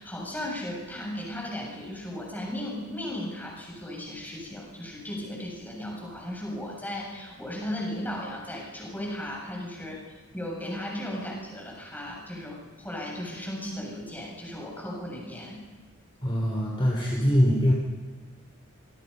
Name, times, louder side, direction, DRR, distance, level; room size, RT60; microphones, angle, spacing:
voice 1, 0.0-10.0 10.3-15.6, left 1 dB, 10° left, -2 dB, 7.2 m, -36 dB
voice 2, 16.2-17.7, equal, 25° left, -1 dB, 3.7 m, -23 dB
26.0 x 22.5 x 5.6 m, 1.4 s
head